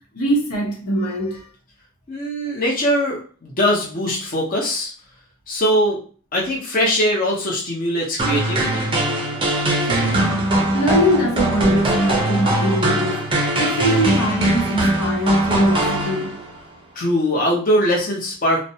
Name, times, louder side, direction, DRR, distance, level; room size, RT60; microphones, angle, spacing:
voice 1, 0.1-1.5 9.9-13.3 13.6-16.4, equal, 85° left, 0.8 m, -22 dB
voice 2, 2.1-4.9 5.5-6.0 6.3-8.9 17.0-18.6, equal, 35° left, 0.7 m, -21 dB
sound 1, 8.2-16.6, right 1 dB, 20° right, 0.5 m, -21 dB
2.4 x 2.1 x 2.7 m
head